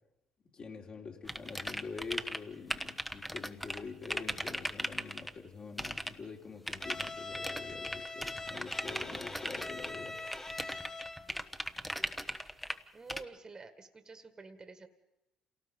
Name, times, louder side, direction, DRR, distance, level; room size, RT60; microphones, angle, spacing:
voice 1, 0.5-10.2, left 4 dB, 45° left, 1 dB, 3.7 m, -45 dB
sound 1, 1.3-2.4 2.7-5.3 5.8-6.1 6.7-12.8 13.1-13.2, equal, 5° left, 1.2 m, -38 dB
Bowed string instrument, 6.8-11.4, left 2 dB, 20° left, 1.5 m, -43 dB
voice 2, 12.9-14.9, right 4 dB, 30° right, 10 dB, 1.8 m, -49 dB
27.5 x 18.5 x 5.4 m, 0.93 s
supercardioid pair, 65°, 2 cm